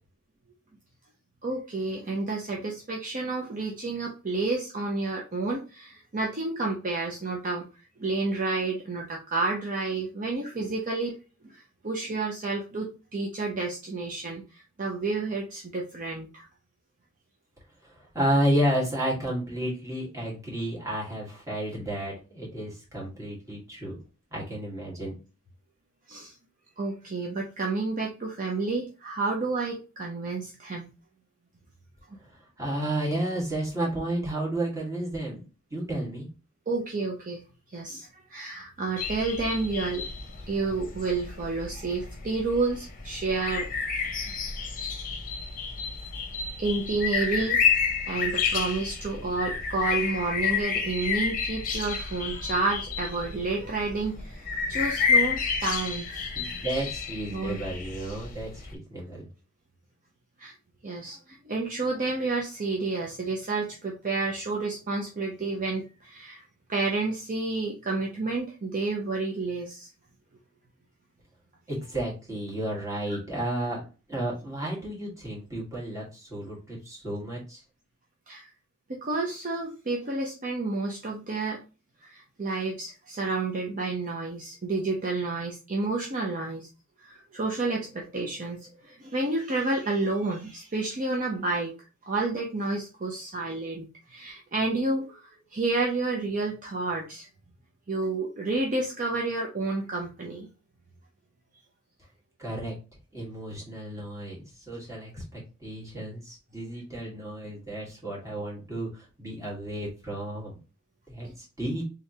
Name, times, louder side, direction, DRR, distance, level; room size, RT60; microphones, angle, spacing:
voice 1, 1.4-7.6 8.0-11.1 11.4-16.4 26.1-26.4 26.8-30.9 36.7-37.4 37.7-40.1 40.4-43.7 46.6-47.6 48.1-56.3 57.3-57.6 60.4-60.5 60.8-66.4 66.7-69.9 78.3-78.5 78.9-81.6 82.0-86.7 87.0-91.7 92.0-97.3 97.9-100.5 111.2-111.3, right 3 dB, 40° right, 0 dB, 0.6 m, -30 dB
voice 2, 17.8-24.0 24.3-25.1 32.6-35.4 35.7-36.3 56.3-59.3 71.7-73.8 74.1-77.6 102.4-102.7 103.1-104.4 104.7-110.6 111.1-111.8, right 1 dB, 15° right, -5 dB, 1.7 m, -32 dB
sound 1, 39.0-58.7, left 5 dB, 40° left, 0.8 m, -30 dB
3.7 x 3.3 x 2.7 m, 0.32 s
head